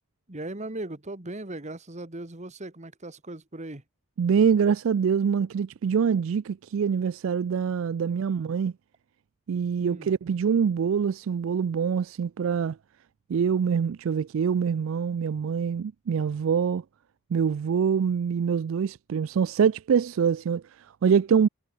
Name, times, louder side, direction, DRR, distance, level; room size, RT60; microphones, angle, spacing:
voice 1, 0.3-3.8 9.8-10.1, right 2 dB, 35° right, 1.6 m, -38 dB
voice 2, 4.2-8.7 9.5-12.8 13.3-16.8 17.3-21.5, right 7 dB, 65° right, 0.3 m, -25 dB
head